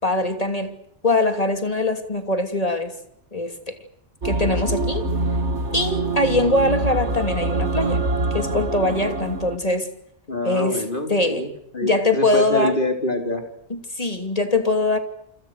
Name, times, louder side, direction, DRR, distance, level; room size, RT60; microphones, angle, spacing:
voice 1, 0.0-0.7 1.0-2.9 3.3-3.8 4.2-5.0 5.7-8.0 8.3-9.9 10.4-10.8 11.1-11.4 11.8-12.7 13.7-15.0, left 2 dB, 35° left, 7 dB, 3.1 m, -22 dB
sound 1, 4.2-9.6, right 2 dB, 80° right, 2.5 m, -25 dB
voice 2, 10.3-13.4, left 2 dB, 50° left, 5 dB, 4.4 m, -26 dB
29.0 x 26.5 x 6.6 m, 0.74 s
omnidirectional pair, 1.2 m